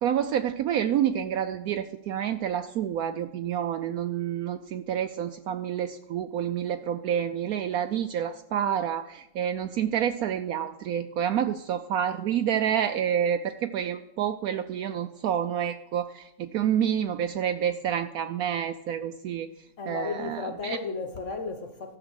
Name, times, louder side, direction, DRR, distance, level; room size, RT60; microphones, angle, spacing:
voice 1, 0.0-19.5 19.9-20.8, right 9 dB, 70° right, 1.0 m, -28 dB
voice 2, 19.8-22.0, left 4 dB, 50° left, 1.3 m, -34 dB
12.5 x 6.8 x 6.4 m
omnidirectional pair, 1.7 m